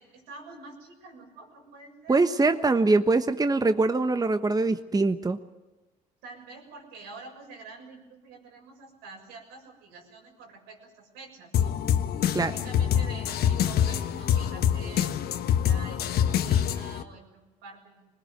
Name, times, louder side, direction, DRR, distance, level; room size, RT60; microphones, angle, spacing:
voice 1, 0.0-2.5 6.2-11.8 12.2-18.1, right 3 dB, 85° right, 1 dB, 6.8 m, -47 dB
voice 2, 2.1-5.4 12.3-12.5, right 3 dB, 20° right, 9 dB, 1.2 m, -23 dB
sound 1, 11.5-17.0, left 9 dB, 70° left, 1.3 m, -25 dB
21.5 x 20.0 x 9.4 m, 1.1 s
supercardioid pair, 65°, 17 cm